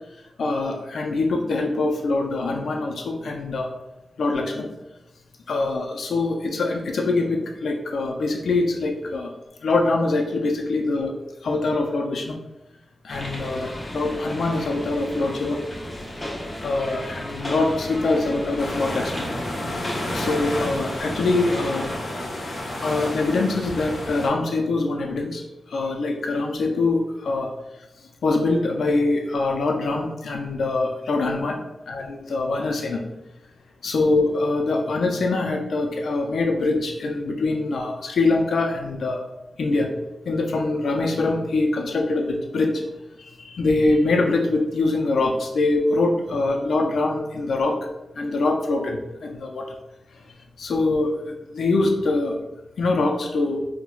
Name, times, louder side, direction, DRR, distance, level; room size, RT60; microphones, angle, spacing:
voice 1, 0.4-3.7 4.2-4.7 5.5-9.3 9.6-11.2 11.4-12.4 13.0-15.6 16.6-19.3 20.1-21.9 22.8-25.4 25.7-27.5 28.2-31.6 31.9-33.0 33.8-39.2 39.6-39.9 40.3-42.8 43.2-47.8 48.2-49.7 50.6-52.4 52.8-53.6, left 2 dB, 80° left, 2 dB, 0.4 m, -23 dB
sound 1, 13.1-22.0, left 1 dB, 25° left, 0.6 m, -35 dB
sound 2, 18.6-24.3, left 1 dB, 60° left, 0.9 m, -31 dB
4.4 x 2.0 x 2.3 m, 0.94 s
wide cardioid pair, 135°, 0 cm